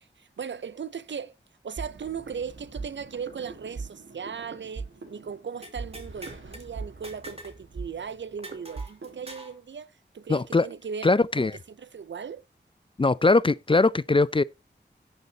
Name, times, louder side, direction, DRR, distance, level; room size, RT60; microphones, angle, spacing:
voice 1, 0.0-1.4 1.6-12.4, right 6 dB, 70° right, 0.6 m, -38 dB
sound 1, 1.8-9.3, right 4 dB, 85° right, 1.7 m, -41 dB
sound 2, 5.6-6.7 7.0-7.6 7.9-8.0 8.4-9.6, right 1 dB, 30° right, 2.6 m, -44 dB
voice 2, 10.3-10.7 11.0-11.5 13.0-14.4, left 3 dB, 25° left, 0.4 m, -21 dB
17.5 x 6.6 x 2.8 m
wide cardioid pair, 60°, 19 cm